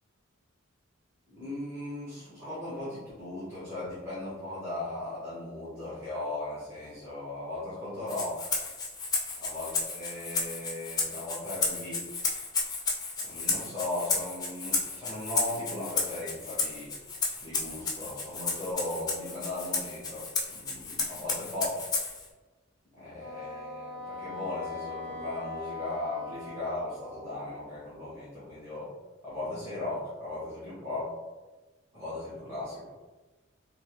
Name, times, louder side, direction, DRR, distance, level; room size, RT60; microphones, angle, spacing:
voice 1, 1.3-8.5 9.4-12.0 13.2-16.9 17.4-21.8 22.9-28.9 29.2-31.1 31.9-32.8, left 2 dB, 10° right, -11 dB, 0.9 m, -37 dB
Rattle (instrument), 8.1-22.3, left 4 dB, 20° left, 0.4 m, -33 dB
Wind instrument woodwind instrument, 23.2-27.7, left 4 dB, 35° right, 0.8 m, -41 dB
3.2 x 2.3 x 2.9 m, 1.2 s
head